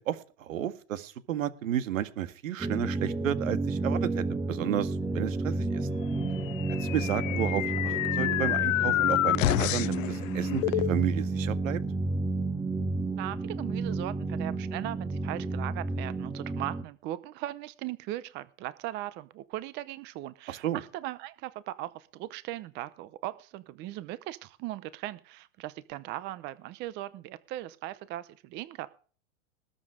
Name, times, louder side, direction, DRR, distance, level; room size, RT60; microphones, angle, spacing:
voice 1, 0.0-5.9 6.7-11.8 20.5-20.8, right 11 dB, 80° right, 11 dB, 1.9 m, -32 dB
sound 1, 2.6-16.8, right 3 dB, 10° right, 1.0 m, -31 dB
sound 2, 4.9-5.5 5.7-10.9, left 16 dB, 45° left, 0.8 m, -38 dB
sound 3, 6.5-10.1, left 16 dB, 80° left, 0.6 m, -28 dB
voice 2, 13.2-28.9, right 15 dB, 25° right, 16 dB, 0.8 m, -38 dB
20.0 x 7.6 x 5.0 m, 0.39 s
supercardioid pair, 150°, 39 cm